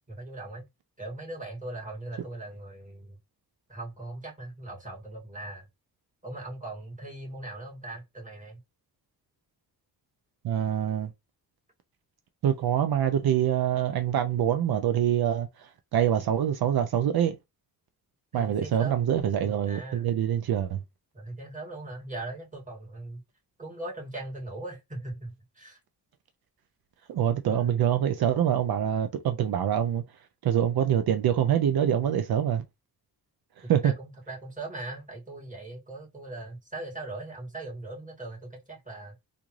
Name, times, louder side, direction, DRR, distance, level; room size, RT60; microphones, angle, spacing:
voice 1, 0.1-0.7 1.0-3.2 3.7-5.7 6.2-8.6 18.3-19.0 19.4-20.1 21.1-23.2 23.6-25.8 27.4-27.7 32.0-32.1 33.6-39.2, right 2 dB, 20° right, 2.2 m, -40 dB
voice 2, 10.4-11.1 12.4-17.4 18.3-20.8 27.1-30.0 30.4-32.6 33.7-33.8, right 10 dB, 75° right, 0.6 m, -25 dB
3.5 x 2.6 x 3.1 m
cardioid pair, 75°, 38 cm